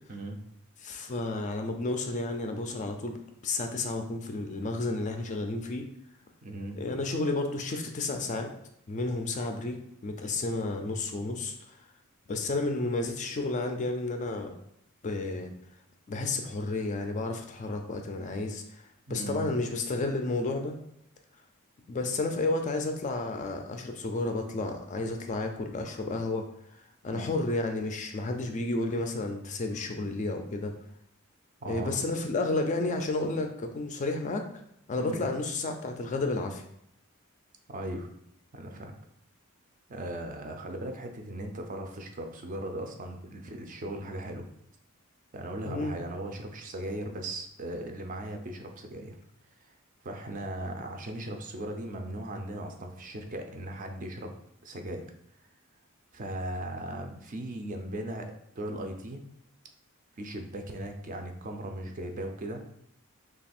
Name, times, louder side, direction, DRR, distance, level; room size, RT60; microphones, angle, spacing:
voice 1, 0.8-5.9 6.7-8.5 8.9-11.8 12.3-14.5 15.0-15.5 16.1-20.8 21.9-30.7 31.7-34.5 34.9-36.6 45.6-46.0, left 2 dB, 35° left, 5 dB, 0.4 m, -31 dB
voice 2, 6.4-6.8 19.1-19.5 27.1-27.3 31.6-32.0 35.0-35.2 37.7-38.1 38.5-38.9 39.9-44.4 45.3-49.2 49.6-49.7 50.0-54.3 54.6-55.1 56.1-58.3 58.6-59.2 60.2-62.6, right 1 dB, 35° right, 4 dB, 0.4 m, -38 dB
3.2 x 2.3 x 4.2 m, 0.73 s
head